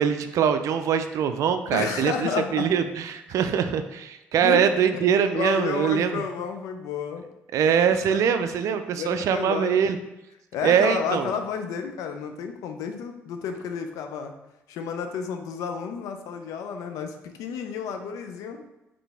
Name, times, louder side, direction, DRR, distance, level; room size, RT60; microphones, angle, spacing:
voice 1, 0.0-6.2 7.5-10.0 10.6-11.3, right 8 dB, 65° right, 9 dB, 0.4 m, -23 dB
voice 2, 1.7-2.7 4.4-4.6 4.9-7.3 8.1-8.2 9.0-9.8 10.5-14.3 14.7-18.6, left 6 dB, 75° left, 6 dB, 0.4 m, -31 dB
4.0 x 3.2 x 3.4 m, 0.97 s
hypercardioid pair, 50°, 6 cm